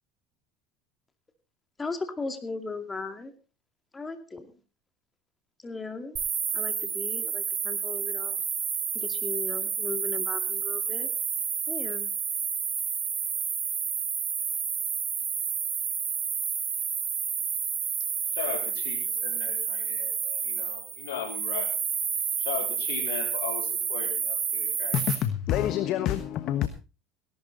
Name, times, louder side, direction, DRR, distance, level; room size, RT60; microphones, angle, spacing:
voice 1, 1.8-3.3 3.9-4.5 5.6-6.2 6.5-8.4 8.9-11.1 11.7-12.1, left 3 dB, 20° left, 2.4 m, -37 dB
sound 1, 6.2-25.2, right 7 dB, 40° right, 4.7 m, -30 dB
voice 2, 18.3-21.7 22.4-25.0, left 8 dB, 85° left, 3.7 m, -37 dB
voice 3, 24.9-26.7, left 11 dB, 55° left, 1.2 m, -27 dB
18.0 x 12.0 x 4.0 m
supercardioid pair, 90°, 0 cm